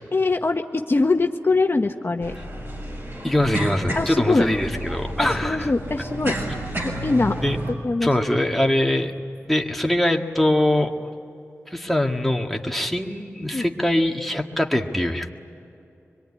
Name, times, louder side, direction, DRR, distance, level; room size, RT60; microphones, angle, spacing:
voice 1, 0.1-2.3 3.9-4.4 5.2-6.4 6.8-7.4 7.7-8.1 13.5-13.7, left 3 dB, 45° left, 4 dB, 1.1 m, -22 dB
sound 1, 2.2-7.7, right 1 dB, 50° right, 6.7 m, -31 dB
voice 2, 3.2-5.7 7.4-7.6 8.0-9.1 9.5-10.9 11.7-15.3, left 1 dB, 5° left, 2 dB, 1.8 m, -22 dB
25.5 x 22.0 x 9.8 m, 2.8 s
wide cardioid pair, 60°, 5 cm